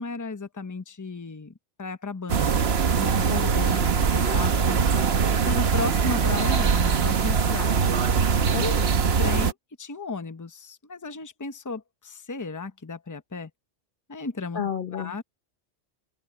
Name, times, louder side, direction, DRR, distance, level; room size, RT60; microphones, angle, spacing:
voice 1, 0.0-2.6 2.9-7.9 8.5-8.7 9.2-13.5 14.1-14.6 14.9-15.2, left 3 dB, 15° left, 0.9 m, -35 dB
sound 1, 2.3-9.5, right 6 dB, 60° right, 1.2 m, -22 dB
voice 2, 3.3-3.8 8.5-8.9 14.5-15.2, left 8 dB, 50° left, 0.9 m, -32 dB
omnidirectional pair, 1.2 m